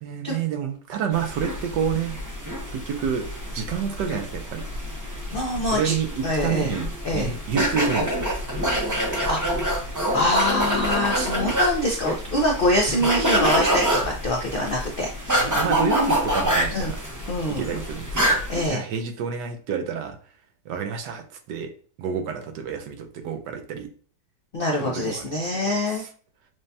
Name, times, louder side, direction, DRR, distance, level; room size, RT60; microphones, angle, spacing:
voice 1, 0.0-2.2 2.7-3.2 3.5-4.6 5.7-8.3 8.8-9.0 12.6-12.7 15.3-17.0 17.6-20.2 20.7-21.7 22.0-23.9 24.8-26.1, right 7 dB, 75° right, 6 dB, 1.3 m, -29 dB
sound 1, 1.1-18.7, equal, 30° right, 0.3 m, -26 dB
voice 2, 5.3-5.9 6.2-6.8 7.0-7.3 9.3-9.7 10.1-15.4 16.7-16.9 17.3-17.6 18.5-18.8 24.5-26.0, left 1 dB, 90° left, -1 dB, 0.4 m, -24 dB
6.3 x 2.2 x 2.7 m, 0.42 s
omnidirectional pair, 1.9 m